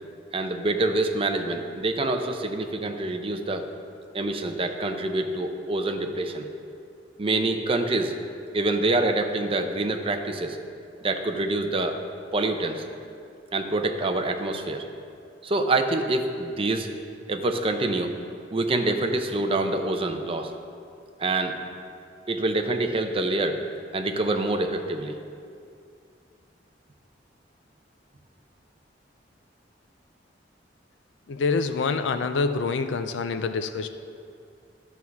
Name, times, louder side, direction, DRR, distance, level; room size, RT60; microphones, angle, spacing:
voice 1, 0.3-3.7 4.1-6.5 7.2-8.1 8.5-10.6 11.0-12.0 12.3-12.8 13.5-14.8 15.4-16.9 17.3-18.1 18.5-20.5 21.2-21.5 22.3-23.6 23.9-25.2, right 2 dB, 30° right, 5 dB, 0.6 m, -26 dB
voice 2, 31.3-33.9, left 4 dB, 80° left, 9 dB, 0.4 m, -26 dB
11.0 x 4.7 x 7.1 m, 2.4 s
head